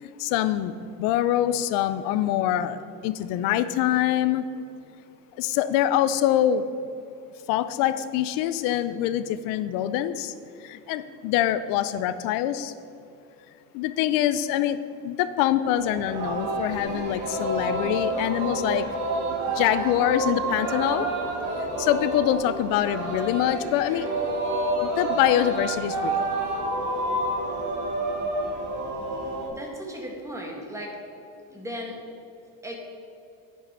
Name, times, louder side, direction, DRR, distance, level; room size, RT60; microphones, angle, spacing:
voice 1, 0.0-4.5 5.4-6.7 7.5-10.3 10.6-12.7 13.7-14.8 15.0-18.9 19.5-21.1 21.6-24.1 24.8-26.4, left 12 dB, 75° left, 13 dB, 0.6 m, -25 dB
Singing, 15.8-29.5, right 2 dB, 60° right, 1.9 m, -29 dB
voice 2, 29.5-31.0 31.5-32.0 32.6-32.8, equal, 10° right, 0 dB, 1.6 m, -36 dB
9.5 x 5.6 x 5.8 m, 2.7 s
cardioid pair, 145°, 34 cm